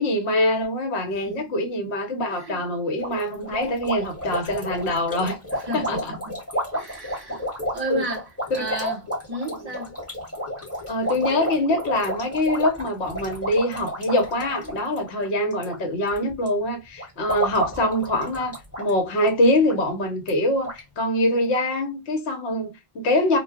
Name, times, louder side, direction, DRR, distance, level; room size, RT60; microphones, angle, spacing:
voice 1, 0.0-5.4 5.7-6.1 7.3-7.4 7.9-8.0 8.5-9.0 9.5-9.7 10.9-23.4, left 1 dB, 65° left, 1.1 m, -24 dB
voice 2, 2.3-2.6 5.5-6.3 6.7-9.0 9.3-9.9, right 2 dB, 35° right, 0.9 m, -33 dB
sound 1, 3.0-15.8 16.0-16.5 17.0-18.9 19.2-19.3 19.7-19.8 20.3-20.4 20.6-20.8, equal, 10° left, 1.2 m, -31 dB
2.2 x 2.2 x 3.4 m
omnidirectional pair, 1.2 m